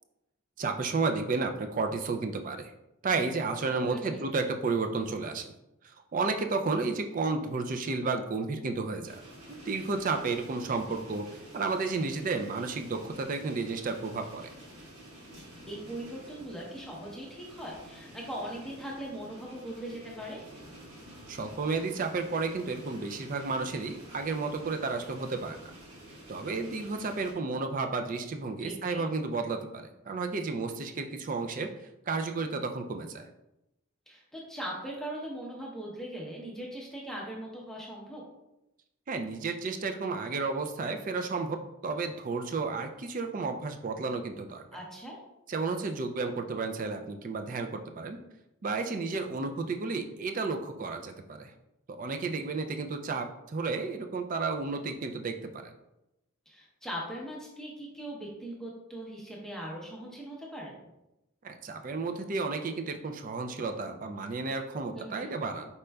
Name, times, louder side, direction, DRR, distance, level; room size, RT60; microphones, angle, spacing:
voice 1, 0.6-2.7 3.0-5.5 6.1-9.2 9.5-14.5 21.3-25.7 26.3-31.7 32.1-33.3 39.1-44.6 45.5-48.2 48.6-51.5 51.9-55.7 61.4-65.7, right 4 dB, 35° right, 6 dB, 0.4 m, -32 dB
voice 2, 3.8-4.2 15.7-20.4 28.6-29.1 34.1-38.2 44.7-45.2 56.5-60.9 64.9-65.3, right 1 dB, ahead, -3 dB, 0.7 m, -40 dB
sound 1, 9.1-27.3, right 1 dB, 65° right, 1.5 m, -50 dB
5.1 x 4.2 x 2.3 m, 0.91 s
head